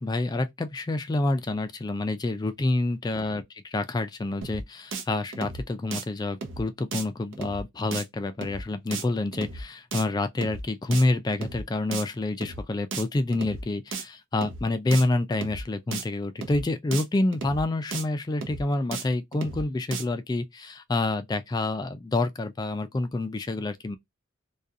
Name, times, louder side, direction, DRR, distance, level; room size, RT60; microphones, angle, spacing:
voice 1, 0.0-24.0, left 2 dB, 20° left, 0.3 m, -28 dB
sound 1, 4.4-4.6 4.9-5.0 5.3-5.6 5.9-6.0 6.4-6.6 6.9-7.0 7.3-7.6 7.9-8.0 8.4-8.6 8.9-9.0 9.3-9.6 9.9-10.0 10.4-10.6 10.9-11.0 11.3-11.6 11.9-12.0 12.4-12.6 12.9-13.0 13.3-13.6 13.9-14.0 14.4-14.6 14.9-15.0 15.3-15.6 15.9-16.0 16.4-16.6 16.9-17.0 17.3-17.6 17.9-18.0 18.4-18.6 18.9-19.0 19.3-19.6 19.9-20.0, right 4 dB, 80° right, 0.6 m, -34 dB
2.4 x 2.3 x 2.6 m
head